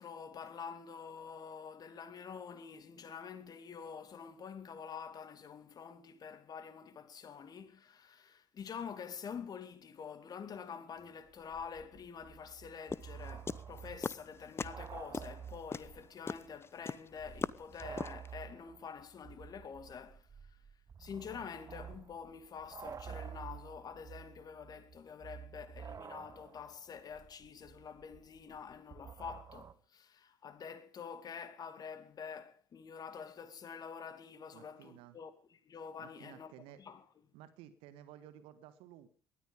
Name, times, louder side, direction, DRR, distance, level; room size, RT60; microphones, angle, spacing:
voice 1, 0.0-20.3 21.0-36.5 36.8-37.0, left 6 dB, 40° left, 2.5 m, -47 dB
sound 1, 11.0-11.1 11.3-16.1 16.4-16.5 17.1-29.7, right 7 dB, 35° right, 1.2 m, -50 dB
sound 2, 12.9-14.3 14.6-14.9 15.1-18.3, left 5 dB, 25° left, 0.9 m, -38 dB
voice 2, 34.5-35.2 36.0-36.8 37.3-39.1, right 11 dB, 60° right, 1.7 m, -55 dB
19.5 x 13.5 x 5.2 m
figure-of-eight pair, 55°, 10 cm